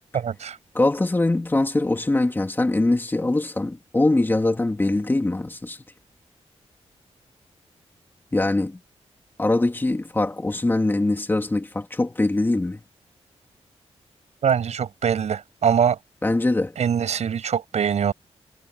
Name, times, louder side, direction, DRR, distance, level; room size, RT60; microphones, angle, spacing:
voice 1, 0.1-0.6 14.4-16.0 16.8-18.1, right 7 dB, 90° right, 6.7 m, -23 dB
voice 2, 0.7-5.8 8.3-8.8 9.4-12.8 16.2-16.7, left 2 dB, 20° left, 2.8 m, -22 dB
wide cardioid pair, 135°, 11 cm